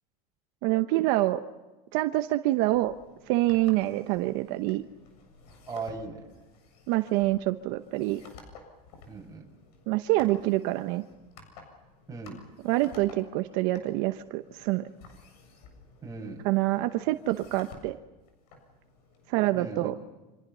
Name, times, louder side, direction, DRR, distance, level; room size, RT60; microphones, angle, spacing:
voice 1, 0.6-1.4 1.9-2.9 3.3-4.8 6.9-8.2 9.9-11.0 12.6-14.9 16.4-18.0 19.3-20.0, right 17 dB, 65° right, 8 dB, 1.0 m, -26 dB
sound 1, 2.7-19.7, left 4 dB, 85° left, 7.5 m, -53 dB
voice 2, 5.7-6.2 9.1-9.5 12.1-12.4 16.0-16.4 19.5-19.9, right 4 dB, 15° right, 0 dB, 6.8 m, -38 dB
28.5 x 26.0 x 5.7 m, 1.1 s
supercardioid pair, 120°, 20 cm